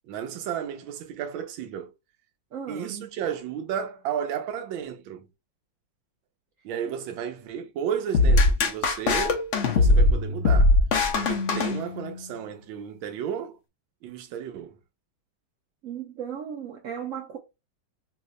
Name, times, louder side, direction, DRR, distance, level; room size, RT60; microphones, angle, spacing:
voice 1, 0.1-1.9 2.7-5.3 6.6-9.4 9.7-10.8 11.1-13.6 14.0-14.8, right 8 dB, 85° right, 1.4 m, -33 dB
voice 2, 2.5-3.1 15.8-17.4, right 8 dB, 65° right, 0.8 m, -36 dB
sound 1, 8.1-12.3, left 2 dB, 60° left, 0.7 m, -21 dB
5.0 x 2.1 x 2.5 m
omnidirectional pair, 2.1 m